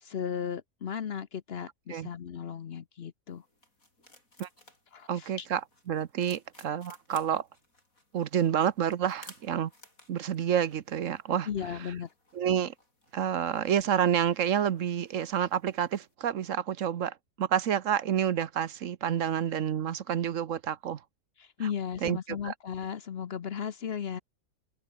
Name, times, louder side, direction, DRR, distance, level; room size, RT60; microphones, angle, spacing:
voice 1, 0.0-3.4 4.9-5.5 11.5-12.1 21.4-24.2, left 8 dB, 50° left, 0.9 m, -36 dB
sound 1, 3.3-16.1, left 2 dB, 75° left, 7.8 m, -58 dB
voice 2, 5.1-5.6 5.9-7.5 8.1-9.7 10.1-11.5 12.3-12.7 13.1-21.0 21.6-21.7 22.0-22.5, right 9 dB, 65° right, 1.2 m, -29 dB
open air
omnidirectional pair, 1.5 m